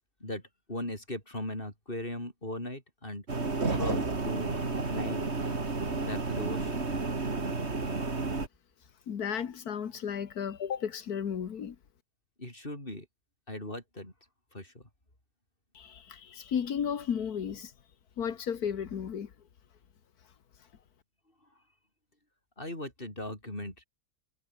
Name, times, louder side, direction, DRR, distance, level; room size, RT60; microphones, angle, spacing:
voice 1, 0.7-3.3 3.7-5.3 6.0-6.8 12.4-13.1 13.5-14.1 14.5-14.8 22.6-23.8, left 1 dB, 35° left, 7.3 m, -38 dB
sound 1, 3.3-8.5, right 3 dB, 45° right, 3.0 m, -31 dB
voice 2, 9.1-11.8 15.7-17.7 18.2-19.3, left 8 dB, 80° left, 1.9 m, -34 dB
omnidirectional pair, 1.6 m